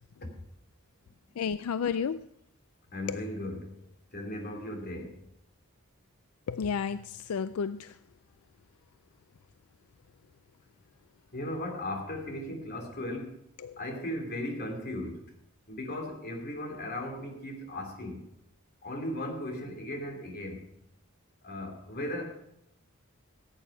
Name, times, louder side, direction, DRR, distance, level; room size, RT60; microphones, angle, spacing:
voice 1, 1.4-2.2 3.1-3.2 6.5-8.0 13.6-13.8, left 6 dB, 80° left, 0.4 m, -32 dB
voice 2, 2.9-3.8 4.1-5.2 11.3-13.4 13.8-15.3 15.7-18.3 18.8-20.6 21.4-22.2, left 1 dB, 45° left, 2.8 m, -37 dB
15.5 x 8.9 x 4.8 m
head